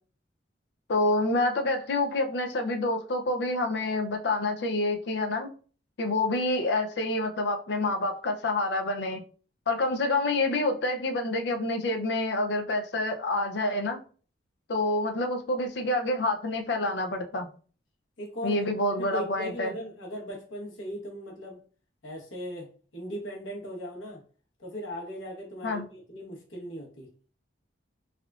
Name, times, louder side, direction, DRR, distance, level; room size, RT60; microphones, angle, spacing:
voice 1, 0.9-5.5 6.0-9.2 9.7-14.0 14.7-17.5 18.4-19.7 25.6-25.9, left 2 dB, 60° left, 0.5 m, -27 dB
voice 2, 18.2-18.6 19.0-21.6 22.0-24.2 24.6-27.1, equal, 85° left, 1.0 m, -38 dB
3.5 x 2.3 x 2.4 m
head